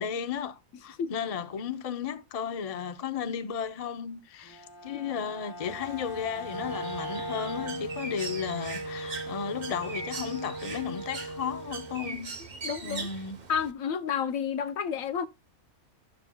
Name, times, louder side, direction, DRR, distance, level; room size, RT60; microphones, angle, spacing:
voice 1, 0.0-12.3 12.8-13.4, left 7 dB, 45° left, 0.4 m, -34 dB
Bowed string instrument, 4.4-8.5, left 2 dB, 15° left, 4.2 m, -42 dB
Bird, 5.6-13.7, right 4 dB, 35° right, 0.9 m, -41 dB
Wind instrument woodwind instrument, 6.5-12.2, right 2 dB, 15° right, 1.3 m, -38 dB
voice 2, 12.6-13.1 13.5-15.3, left 7 dB, 70° left, 1.1 m, -30 dB
12.5 x 7.3 x 2.2 m
omnidirectional pair, 1.6 m